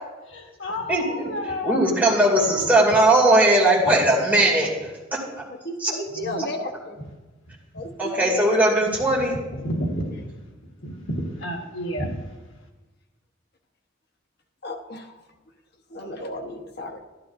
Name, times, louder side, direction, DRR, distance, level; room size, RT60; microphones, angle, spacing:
voice 1, 0.3-2.4 6.2-6.5 6.9-7.0 7.7-7.8 9.6-10.3 10.8-12.2, equal, 85° left, 1 dB, 1.5 m, -31 dB
voice 2, 0.9-1.3 1.6-4.9 5.8-5.9 8.0-9.4, right 1 dB, 10° right, -5 dB, 2.5 m, -19 dB
voice 3, 5.6-6.9 7.7-8.5 14.6-15.0 15.9-17.0, left 1 dB, 55° left, 2 dB, 1.1 m, -33 dB
12.0 x 11.5 x 2.6 m, 1.2 s
head